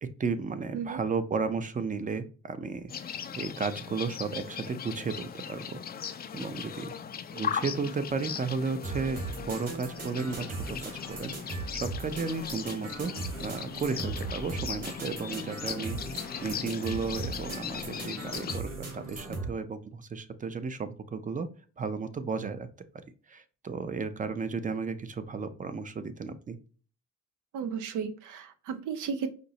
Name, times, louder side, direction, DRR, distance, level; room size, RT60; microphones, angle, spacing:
voice 1, 0.0-5.8 6.3-6.9 7.3-10.8 11.1-13.1 13.4-21.5 21.8-22.7 23.3-26.6, right 4 dB, 25° right, 11 dB, 0.5 m, -34 dB
sound 1, 2.9-18.6, left 7 dB, 30° left, 0.4 m, -38 dB
sound 2, 8.8-19.5, right 3 dB, 55° right, 1.9 m, -38 dB
voice 2, 27.5-29.3, right 6 dB, 80° right, 9 dB, 0.7 m, -34 dB
5.1 x 2.0 x 2.7 m, 0.39 s
cardioid pair, 90°, 30 cm